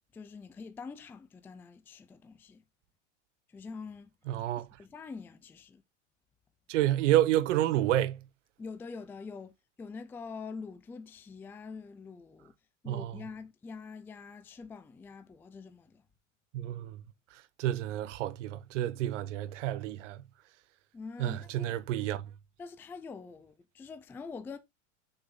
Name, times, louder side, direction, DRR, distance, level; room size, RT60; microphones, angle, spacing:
voice 1, 0.1-2.6 3.5-4.1 4.6-5.8 8.6-9.5 9.8-12.5 12.8-16.0 20.9-21.8 22.6-24.6, left 4 dB, 5° left, 0.4 m, -45 dB
voice 2, 4.3-4.7 6.7-8.2 12.9-13.2 16.5-17.0 17.6-20.2 21.2-22.2, right 13 dB, 75° right, 1.0 m, -29 dB
6.8 x 5.7 x 3.7 m
supercardioid pair, 150°, 37 cm